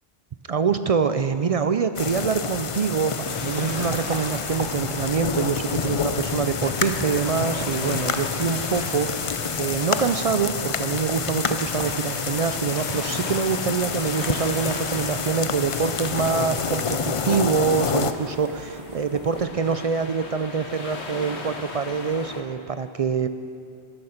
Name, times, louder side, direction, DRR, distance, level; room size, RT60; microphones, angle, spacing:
voice 1, 0.5-23.3, right 6 dB, 60° right, 10 dB, 0.3 m, -25 dB
sound 1, 1.9-18.1, left 6 dB, 45° left, 0.4 m, -28 dB
sound 2, 2.9-22.4, left 3 dB, 90° left, 1.5 m, -38 dB
sound 3, 3.5-19.5, right 2 dB, 35° right, 0.8 m, -43 dB
13.0 x 13.0 x 5.7 m, 2.5 s
omnidirectional pair, 1.1 m